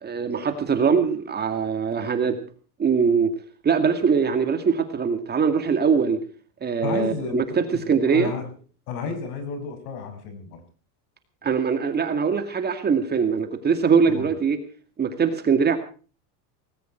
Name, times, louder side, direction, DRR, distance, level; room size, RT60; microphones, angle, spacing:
voice 1, 0.0-2.4 2.8-3.3 3.6-6.2 6.6-8.3 11.4-14.6 15.0-15.8, right 6 dB, 20° right, 8 dB, 2.1 m, -22 dB
voice 2, 6.8-8.5 8.9-10.6 14.1-14.3, left 5 dB, 70° left, 8 dB, 6.8 m, -32 dB
19.0 x 16.0 x 4.5 m, 0.39 s
supercardioid pair, 145°, 47 cm